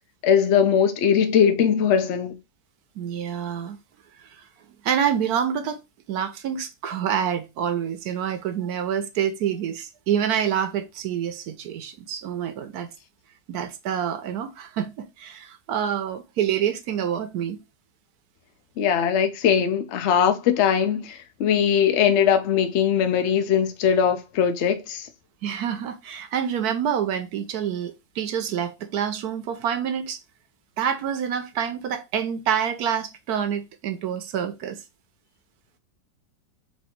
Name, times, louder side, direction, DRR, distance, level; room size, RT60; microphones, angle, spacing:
voice 1, 0.2-2.4 18.8-25.1, left 8 dB, 60° left, 0.7 m, -20 dB
voice 2, 3.0-3.8 4.2-4.3 4.8-5.8 6.1-12.9 13.5-17.6 25.4-30.2 30.8-34.8, right 8 dB, 70° right, 1.1 m, -27 dB
4.4 x 2.7 x 4.3 m
omnidirectional pair, 1.9 m